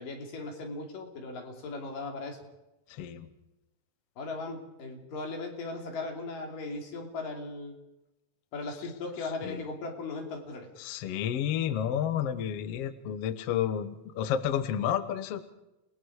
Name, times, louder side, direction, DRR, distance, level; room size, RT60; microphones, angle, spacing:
voice 1, 0.0-2.4 4.2-7.8 8.5-10.7, left 3 dB, 80° left, 2 dB, 4.5 m, -38 dB
voice 2, 2.9-3.3 9.4-9.6 10.8-15.5, left 9 dB, 65° left, 12 dB, 1.6 m, -31 dB
29.5 x 19.5 x 4.8 m, 0.94 s
omnidirectional pair, 3.8 m